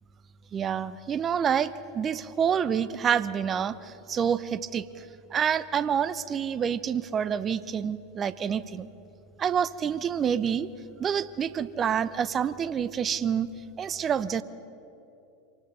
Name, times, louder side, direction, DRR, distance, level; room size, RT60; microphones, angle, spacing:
voice 1, 0.5-5.0 5.3-8.9 9.4-10.7 11.0-13.5 13.8-14.4, right 8 dB, 30° right, 16 dB, 0.8 m, -27 dB
26.5 x 19.5 x 5.3 m, 2.8 s
figure-of-eight pair, 80°, 0 cm